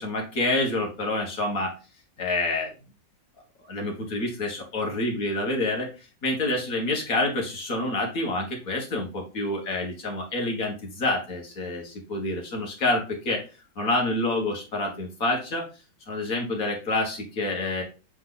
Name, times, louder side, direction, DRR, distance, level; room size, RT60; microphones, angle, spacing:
voice 1, 0.0-1.7 2.2-2.7 3.7-5.9 6.2-13.4 13.8-15.7 16.1-17.8, left 2 dB, 50° left, 1 dB, 2.1 m, -27 dB
7.6 x 3.8 x 4.0 m, 0.32 s
omnidirectional pair, 2.0 m